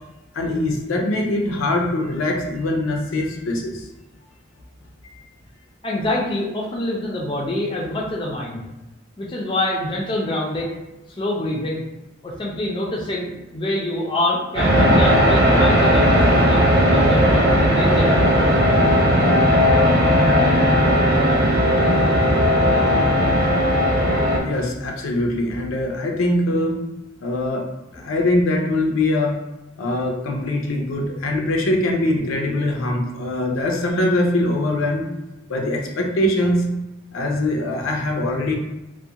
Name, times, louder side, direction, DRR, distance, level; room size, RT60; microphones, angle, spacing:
voice 1, 0.3-3.8 24.4-26.8 27.2-27.6 27.9-29.4 29.8-35.1 35.5-36.6 37.1-38.6, left 1 dB, 80° left, 1 dB, 0.5 m, -22 dB
voice 2, 5.8-8.6 9.2-10.8 11.2-11.8 12.2-18.6 27.9-28.0, left 1 dB, 25° left, -3 dB, 0.4 m, -26 dB
sound 1, 14.5-24.4, equal, 50° right, 0.5 m, -16 dB
2.4 x 2.1 x 2.7 m, 0.98 s
head